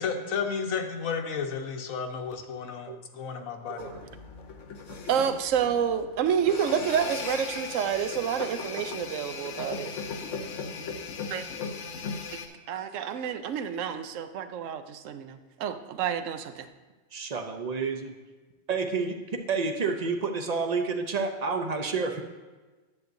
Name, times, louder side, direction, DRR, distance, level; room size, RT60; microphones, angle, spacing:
voice 1, 0.0-3.9, left 5 dB, 85° left, 4 dB, 1.2 m, -32 dB
sound 1, 3.8-12.5, left 5 dB, 65° left, 1.1 m, -38 dB
voice 2, 5.0-9.9 11.3-11.4 12.7-16.7, right 8 dB, 75° right, 10 dB, 1.0 m, -29 dB
voice 3, 17.1-18.1 18.7-19.2 19.5-22.2, right 4 dB, 50° right, 5 dB, 0.5 m, -29 dB
10.5 x 7.7 x 2.6 m, 1.3 s
omnidirectional pair, 1.4 m